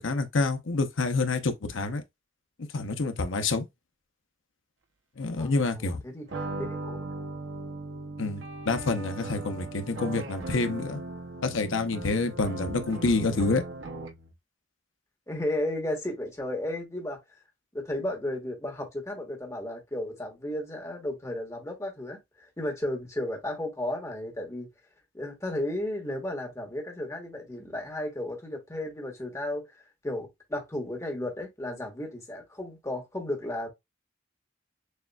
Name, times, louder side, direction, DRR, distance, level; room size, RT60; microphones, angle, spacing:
voice 1, 0.0-2.0 2.7-3.6 5.2-6.0 8.2-11.0 11.4-13.6, left 3 dB, 80° left, 0.8 m, -27 dB
voice 2, 5.4-6.3 6.7-7.1 15.3-17.2 17.7-24.7 25.1-29.6 30.0-33.7, left 1 dB, 15° left, 1.2 m, -34 dB
sound 1, 6.3-14.3, right 2 dB, 70° right, 0.7 m, -38 dB
6.5 x 2.4 x 2.3 m
head